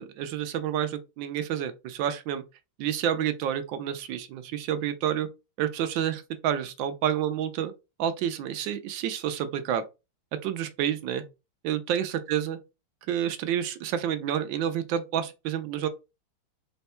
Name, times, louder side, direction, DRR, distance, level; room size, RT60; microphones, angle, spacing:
voice 1, 0.0-2.4 2.8-5.3 5.6-7.7 8.0-9.8 10.4-11.2 11.6-12.6 13.1-15.9, right 10 dB, 75° right, 1.3 m, -29 dB
4.3 x 2.2 x 4.1 m
omnidirectional pair, 2.2 m